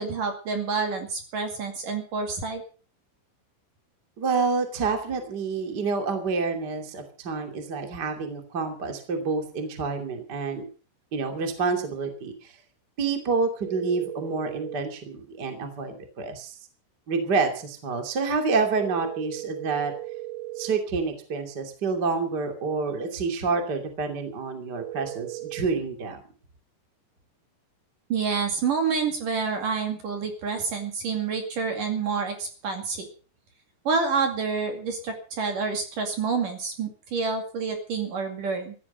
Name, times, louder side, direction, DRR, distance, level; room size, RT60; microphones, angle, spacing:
voice 1, 0.0-2.6 28.1-33.1 33.8-38.7, right 5 dB, 50° right, 5 dB, 3.2 m, -28 dB
voice 2, 4.2-10.6 11.1-12.5 13.0-16.5 17.1-19.9 20.6-26.2, right 4 dB, 30° right, 5 dB, 1.9 m, -28 dB
sound 1, 13.6-14.8 18.8-20.8 24.8-25.6, right 15 dB, 75° right, 3.3 m, -37 dB
14.5 x 14.5 x 5.5 m, 0.38 s
omnidirectional pair, 6.0 m